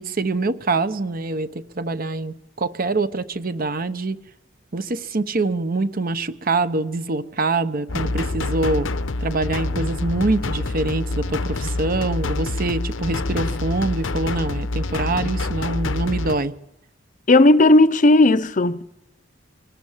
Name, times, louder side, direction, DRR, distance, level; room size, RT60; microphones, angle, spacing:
voice 1, 0.0-4.2 4.7-8.9 9.2-16.5, right 3 dB, 50° right, 0.9 m, -24 dB
sound 1, 7.9-16.4, left 2 dB, 90° left, 0.9 m, -26 dB
voice 2, 17.3-18.9, left 2 dB, 40° left, 0.8 m, -14 dB
24.0 x 18.5 x 7.3 m
head